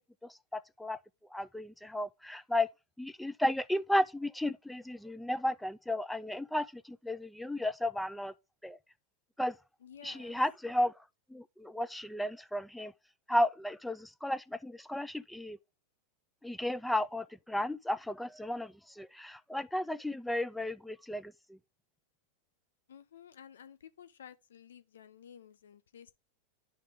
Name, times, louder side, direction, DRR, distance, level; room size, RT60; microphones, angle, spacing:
voice 1, 0.2-1.0 1.3-2.7 3.0-8.3 8.6-8.8 9.4-9.6 10.0-10.9 11.3-12.9 13.3-15.6 16.4-21.6, left 1 dB, 5° left, 0.3 m, -34 dB
voice 2, 9.8-10.4 22.9-26.1, left 8 dB, 85° left, 0.5 m, -53 dB
10.5 x 3.5 x 3.4 m
hypercardioid pair, 110°, 0 cm